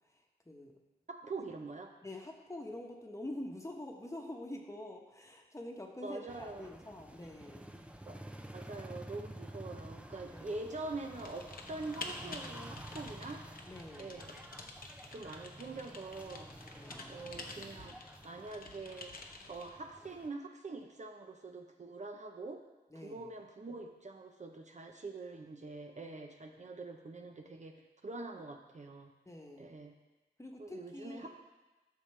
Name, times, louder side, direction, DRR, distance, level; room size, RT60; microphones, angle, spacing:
voice 1, 1.1-1.9 6.0-6.7 8.0-8.2 8.5-13.4 14.0-14.4 15.1-16.5 17.1-18.0 18.2-19.1 19.5-22.6 22.9-27.7 28.0-29.1 29.6-29.9 30.6-31.3, right 3 dB, 45° right, 3 dB, 0.7 m, -44 dB
voice 2, 2.0-7.6 10.3-10.6 13.7-14.2 16.7-17.5 22.9-23.2 29.3-29.7 30.4-31.3, left 1 dB, 20° left, 1 dB, 1.1 m, -46 dB
sound 1, 6.3-20.3, right 1 dB, 5° right, 0.5 m, -50 dB
Typing, 11.1-19.7, left 3 dB, 60° left, 0.9 m, -49 dB
12.5 x 6.7 x 3.3 m, 1.1 s
wide cardioid pair, 105°, 17 cm